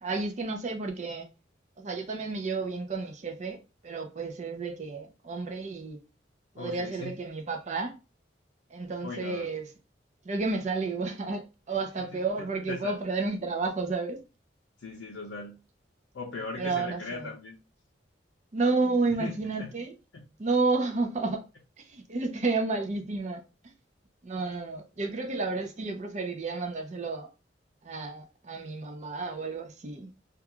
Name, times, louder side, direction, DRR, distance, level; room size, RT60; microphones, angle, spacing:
voice 1, 0.0-1.3 1.8-3.6 3.8-6.0 6.5-8.0 8.7-9.7 10.2-14.2 16.6-17.3 18.5-20.0 20.4-21.4 21.8-23.7 24.2-27.3 27.8-30.1, right 3 dB, 40° right, 0.5 m, -31 dB
voice 2, 6.6-7.1 9.0-9.5 12.1-12.9 14.8-15.6 16.1-17.6 19.1-19.7 20.1-20.3, left 3 dB, 85° left, 0.5 m, -39 dB
2.4 x 2.2 x 2.9 m
head